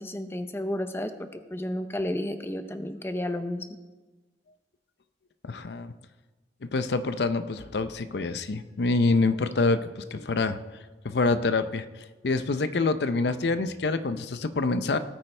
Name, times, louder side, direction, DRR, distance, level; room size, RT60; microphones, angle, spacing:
voice 1, 0.0-3.6, left 1 dB, 15° left, 8 dB, 0.5 m, -32 dB
voice 2, 5.4-5.9 6.6-10.6 11.0-11.9 12.2-15.0, left 3 dB, 70° left, 11 dB, 0.6 m, -26 dB
18.5 x 8.8 x 3.3 m, 1.2 s
head